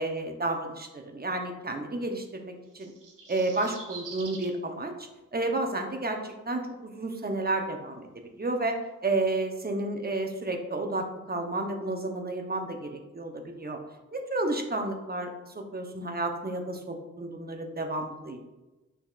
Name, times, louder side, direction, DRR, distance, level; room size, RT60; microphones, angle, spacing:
voice 1, 0.0-2.9 3.3-4.9 5.3-8.1 8.4-8.8 9.0-13.8 14.1-18.4, right 2 dB, 30° right, 4 dB, 0.7 m, -31 dB
sound 1, 2.7-4.5 6.0-6.1, right 5 dB, 90° right, 0.6 m, -45 dB
6.5 x 2.7 x 2.4 m, 1.1 s
cardioid pair, 50°, 31 cm